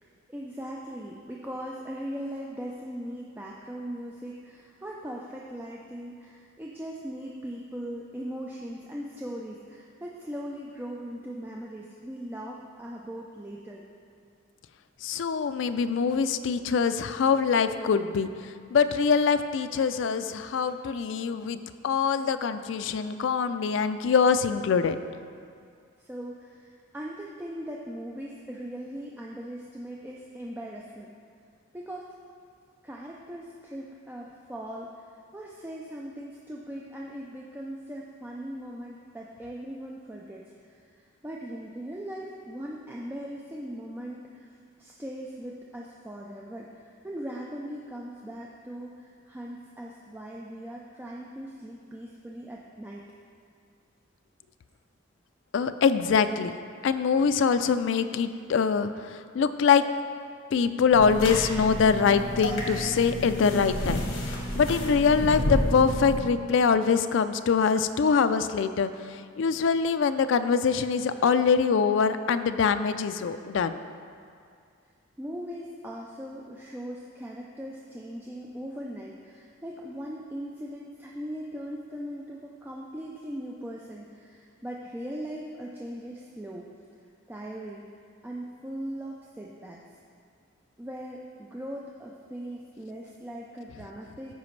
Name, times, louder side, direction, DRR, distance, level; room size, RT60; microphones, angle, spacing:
voice 1, 0.3-13.8 20.7-20.8 22.0-22.1 26.0-31.1 31.7-32.1 32.8-44.5 44.8-53.0 75.2-86.7 87.3-87.8 88.2-89.8 90.8-94.3, equal, 10° right, -3 dB, 0.4 m, -39 dB
voice 2, 15.0-21.6 21.8-25.0 55.5-56.5 56.8-59.8 60.5-64.0 64.3-73.8 93.7-93.8, left 6 dB, 65° left, 10 dB, 0.3 m, -24 dB
sound 1, 60.9-66.2, equal, 85° left, 1.3 m, -30 dB
13.5 x 5.0 x 3.2 m, 2.3 s
head